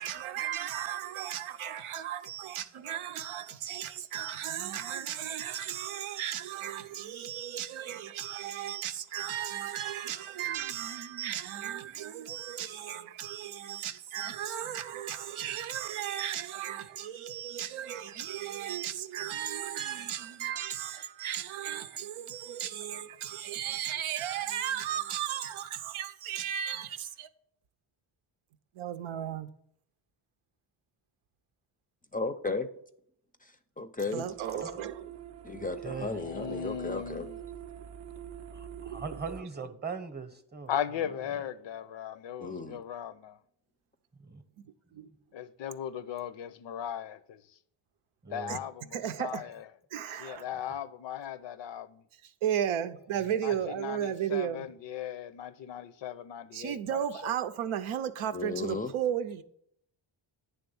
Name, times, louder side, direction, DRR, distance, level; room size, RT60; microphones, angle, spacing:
voice 1, 0.0-27.3 28.7-29.5 34.1-35.0 36.5-36.6 38.9-39.2 44.9-45.1 48.5-48.6 48.9-49.5 49.9-50.4 52.1-54.7 56.5-59.4, right 10 dB, 90° right, 0.7 m, -35 dB
voice 2, 32.1-32.7 33.4-34.3 35.4-37.3 42.4-42.8 58.3-58.9, left 3 dB, 20° left, 0.4 m, -35 dB
sound 1, 34.3-39.4, right 9 dB, 35° right, 0.4 m, -45 dB
voice 3, 34.5-34.8 35.5-36.2 38.5-41.2 44.2-44.4 45.0-45.2 48.2-48.6 50.5-50.8, right 5 dB, 20° right, 0.8 m, -41 dB
voice 4, 36.2-37.4 40.7-43.4 45.3-47.4 48.3-49.6 50.2-52.0 53.4-57.0, left 9 dB, 65° left, 0.6 m, -38 dB
9.5 x 3.5 x 6.9 m
cardioid pair, 95°, 48 cm